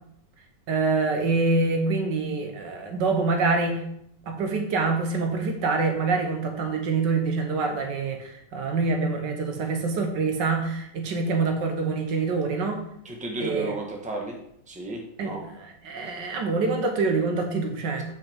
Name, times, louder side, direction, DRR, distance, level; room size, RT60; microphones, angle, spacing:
voice 1, 0.7-3.8 4.3-12.8 13.4-13.7 15.2-18.0, right 3 dB, 80° right, 4 dB, 1.7 m, -26 dB
voice 2, 13.0-14.4 14.7-15.4, right 1 dB, 5° right, 0 dB, 0.9 m, -33 dB
7.9 x 5.8 x 3.5 m, 0.76 s
omnidirectional pair, 1.9 m